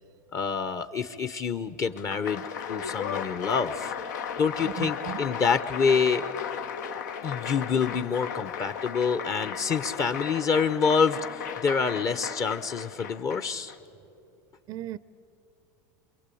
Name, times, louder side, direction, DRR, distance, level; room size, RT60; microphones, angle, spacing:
voice 1, 0.3-3.9 4.4-6.2 7.2-13.7, left 5 dB, 35° left, 0.9 m, -27 dB
Applause, 1.9-13.8, left 7 dB, 85° left, 1.1 m, -35 dB
voice 2, 4.6-5.4 14.7-15.0, right 14 dB, 45° right, 0.5 m, -37 dB
28.5 x 22.5 x 8.5 m
supercardioid pair, 115°, 9 cm